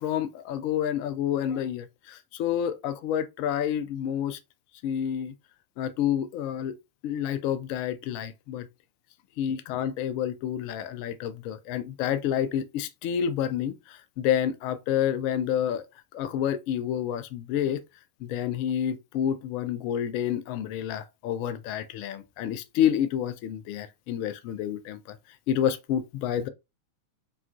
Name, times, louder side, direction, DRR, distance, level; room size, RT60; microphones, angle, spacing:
voice 1, 0.0-4.4 4.8-5.3 5.8-6.8 7.0-8.7 9.4-15.8 16.1-17.8 18.2-25.2 25.5-26.5, left 9 dB, 45° left, 0.3 m, -29 dB
2.8 x 2.3 x 2.4 m
figure-of-eight pair, 90°, 0 cm